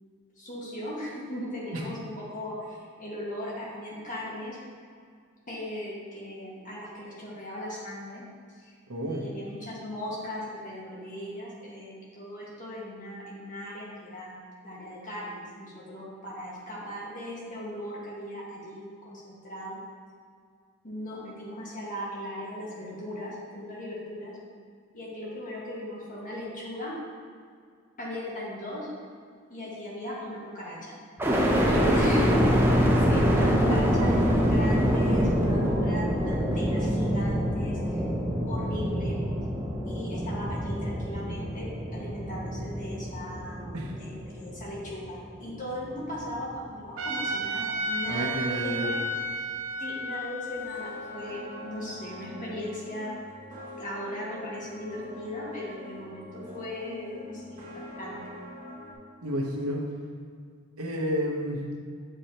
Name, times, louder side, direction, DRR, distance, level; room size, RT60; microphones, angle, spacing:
voice 1, 0.4-4.6 5.5-8.2 8.6-14.3 14.6-19.8 20.8-24.4 24.9-26.9 28.0-28.9 29.5-30.9 31.9-32.4 33.1-38.0 38.5-39.2 39.8-41.7 41.9-48.9 49.8-53.1 53.8-57.7 58.0-58.2, left 1 dB, 40° left, -6 dB, 1.6 m, -38 dB
voice 2, 8.9-9.2 31.6-32.0 43.7-43.9 48.1-48.9 59.2-59.8 60.8-61.7, equal, 80° right, -1 dB, 1.0 m, -30 dB
sound 1, 31.2-45.2 45.7-46.4, equal, 10° right, 0.6 m, -25 dB
Trumpet, 47.0-52.2, right 1 dB, 65° right, 0.6 m, -33 dB
sound 2, 50.5-58.9, left 1 dB, 40° right, 1.5 m, -43 dB
7.7 x 4.9 x 2.9 m, 2.1 s
head